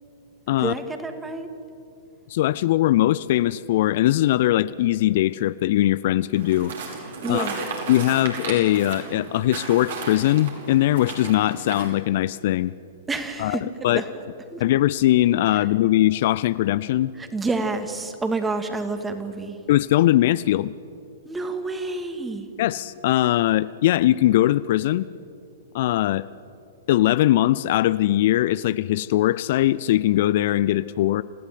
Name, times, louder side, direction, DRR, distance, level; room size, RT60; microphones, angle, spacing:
voice 1, 0.6-1.5 7.2-7.8 13.1-14.1 14.5-14.6 15.5-15.6 17.2-19.6 21.2-22.5, right 3 dB, 10° right, 7 dB, 2.4 m, -29 dB
voice 2, 2.3-6.7 7.3-7.5 7.9-12.7 13.4-14.0 14.6-17.1 19.7-20.7 22.6-25.1 25.7-26.3 26.9-31.2, left 14 dB, 50° left, 17 dB, 0.5 m, -20 dB
sound 1, 6.3-11.9, right 4 dB, 60° right, 5.7 m, -34 dB
28.0 x 16.0 x 9.3 m, 2.6 s
figure-of-eight pair, 105°, 0 cm